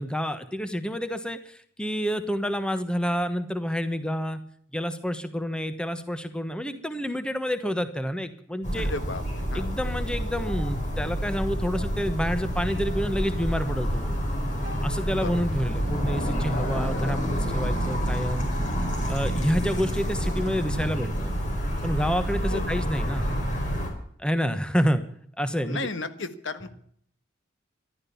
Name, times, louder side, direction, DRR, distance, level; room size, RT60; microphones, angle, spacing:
voice 1, 0.0-4.4 4.7-8.9 9.5-14.2 14.8-18.5 19.1-21.5 21.8-23.3 24.2-25.0 25.4-25.9, equal, 5° left, 10 dB, 1.1 m, -28 dB
sound 1, 8.6-23.9, equal, 40° left, 4.9 m, -28 dB
voice 2, 8.7-9.2 9.5-9.7 15.2-15.4 22.5-22.7 25.6-26.8, left 3 dB, 75° left, 11 dB, 1.5 m, -34 dB
14.5 x 12.0 x 7.0 m, 0.63 s
head